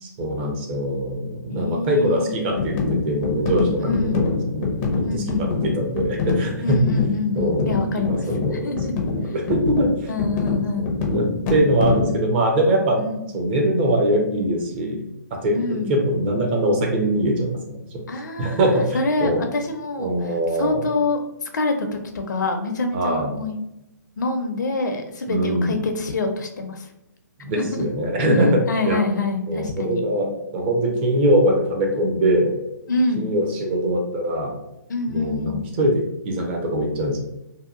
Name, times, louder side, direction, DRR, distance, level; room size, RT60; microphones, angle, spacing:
voice 1, 0.0-6.8 7.4-8.7 9.3-10.1 10.8-13.1 13.3-15.0 15.3-17.8 18.4-19.4 20.0-20.8 22.9-23.3 25.3-25.8 27.4-29.0 29.5-32.6 33.2-34.5 35.1-37.2, right 1 dB, 35° right, 1 dB, 0.6 m, -22 dB
voice 2, 1.5-2.3 3.8-4.3 5.0-5.5 6.6-8.2 8.5-8.9 9.3-9.4 10.1-10.9 13.0-13.2 15.5-16.0 18.1-23.6 24.2-26.9 27.5-27.8 28.7-30.0 32.9-33.3 34.9-35.6, left 3 dB, 70° left, 5 dB, 0.5 m, -26 dB
sound 1, 2.6-12.2, left 4 dB, 20° left, 0.4 m, -25 dB
2.7 x 2.2 x 2.4 m, 0.88 s
hypercardioid pair, 145°, 10 cm